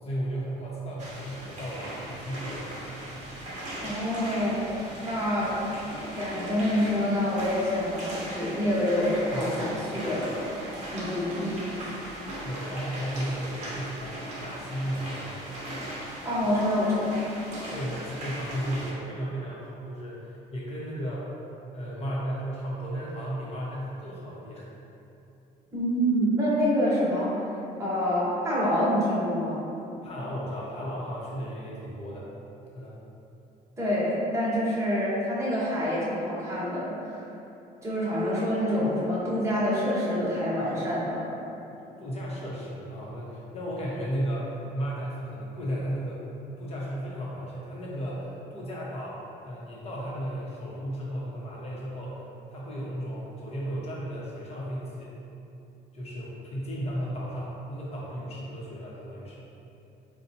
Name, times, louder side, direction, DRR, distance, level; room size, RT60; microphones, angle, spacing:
voice 1, 0.0-2.7 9.3-9.8 12.4-15.4 17.7-21.4 21.7-24.7 30.0-32.3 32.7-33.0 42.0-46.2 46.6-52.2 52.5-55.1 55.9-59.5, equal, 35° left, -6 dB, 0.9 m, -34 dB
sound 1, 1.0-18.9, right 1 dB, 45° right, 0.8 m, -38 dB
voice 2, 3.8-4.6 5.1-5.8 6.1-11.6 16.2-17.2 25.7-27.4 27.8-29.6 33.8-37.2 37.8-41.2, equal, 15° right, -8 dB, 1.0 m, -27 dB
4.1 x 2.2 x 2.7 m, 2.9 s
cardioid pair, 110°, 17 cm